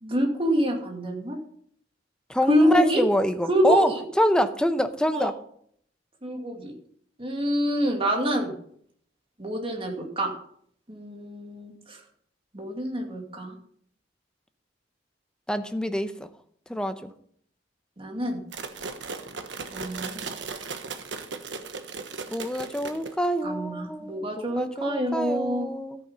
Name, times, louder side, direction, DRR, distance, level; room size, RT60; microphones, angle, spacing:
voice 1, 0.0-1.4 2.5-3.0 3.5-4.0 5.1-5.3 6.2-6.7 7.2-8.5 9.4-10.3 10.9-12.0 12.5-13.6 18.0-18.4 19.7-20.3 23.4-25.7, equal, 30° right, 2 dB, 2.4 m, -26 dB
voice 2, 2.3-5.3 15.5-16.1 16.7-17.1 22.3-26.0, equal, 5° left, 9 dB, 0.8 m, -26 dB
sound 1, 18.5-23.4, right 4 dB, 70° right, 1.3 m, -37 dB
13.5 x 9.0 x 5.6 m, 0.64 s
head